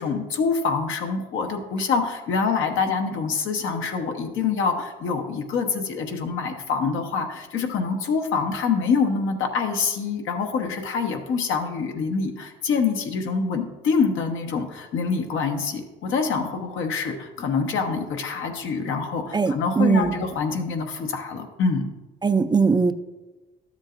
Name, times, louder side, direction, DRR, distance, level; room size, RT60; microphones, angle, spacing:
voice 1, 0.0-21.9, left 5 dB, 80° left, 4 dB, 1.1 m, -25 dB
voice 2, 19.3-20.2 22.2-22.9, right 5 dB, 20° right, 11 dB, 0.4 m, -20 dB
12.0 x 7.3 x 2.5 m, 1.2 s
cardioid pair, 90°, 20 cm